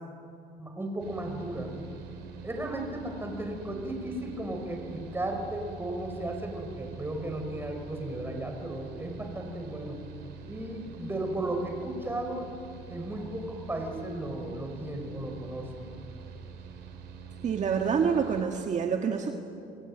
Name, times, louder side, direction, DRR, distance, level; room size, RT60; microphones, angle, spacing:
voice 1, 0.6-1.7 2.4-10.0 10.5-12.5 12.9-15.9, right 1 dB, 15° right, 3 dB, 5.6 m, -35 dB
Mechanical fan, 1.0-18.4, right 6 dB, 85° right, 4.7 m, -45 dB
voice 2, 17.4-19.3, right 6 dB, 45° right, 3 dB, 1.7 m, -27 dB
27.5 x 21.0 x 9.1 m, 2.7 s
cardioid pair, 110°, 17 cm